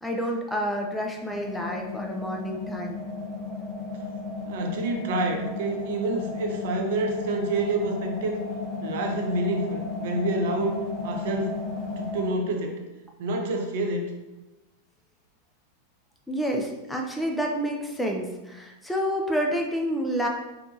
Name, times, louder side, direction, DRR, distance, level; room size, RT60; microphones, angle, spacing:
voice 1, 0.0-3.0 16.3-20.3, equal, 5° left, 0 dB, 0.5 m, -29 dB
sound 1, 1.3-12.3, left 3 dB, 25° left, 0.9 m, -34 dB
voice 2, 4.4-8.4 8.8-12.8 13.2-14.1, right 2 dB, 55° right, 3 dB, 0.5 m, -28 dB
3.7 x 3.5 x 2.9 m, 1.0 s
figure-of-eight pair, 90°, 0 cm